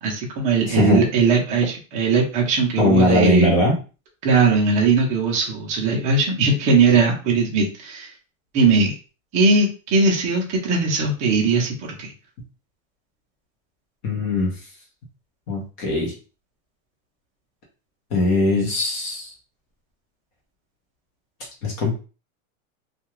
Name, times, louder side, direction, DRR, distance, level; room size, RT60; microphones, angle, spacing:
voice 1, 0.0-3.5 4.2-8.1 8.5-8.9 9.3-12.1, right 4 dB, 20° right, -1 dB, 0.5 m, -19 dB
voice 2, 0.7-1.0 2.8-3.7 14.0-14.6 15.5-16.1 18.1-19.3 21.6-21.9, left 2 dB, 35° left, -2 dB, 0.8 m, -20 dB
2.4 x 2.2 x 3.0 m, 0.34 s
supercardioid pair, 160°, 41 cm